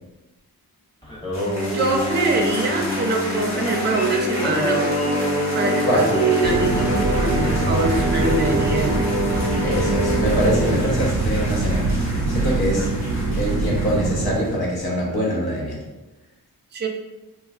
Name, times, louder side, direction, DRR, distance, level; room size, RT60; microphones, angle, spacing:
Singing, 1.0-10.8, equal, 10° left, 0.8 m, -25 dB
sound 1, 1.3-14.5, left 1 dB, 45° left, 1.0 m, -33 dB
voice 1, 1.7-5.0 5.5-8.9 16.7-16.9, right 3 dB, 30° right, 2 dB, 0.4 m, -23 dB
sound 2, 6.4-14.3, right 3 dB, 80° right, 0.5 m, -24 dB
voice 2, 9.6-11.9 12.3-12.9 13.4-15.8, equal, 75° left, -3 dB, 0.9 m, -23 dB
3.1 x 2.2 x 2.4 m, 1.1 s
wide cardioid pair, 70°, 38 cm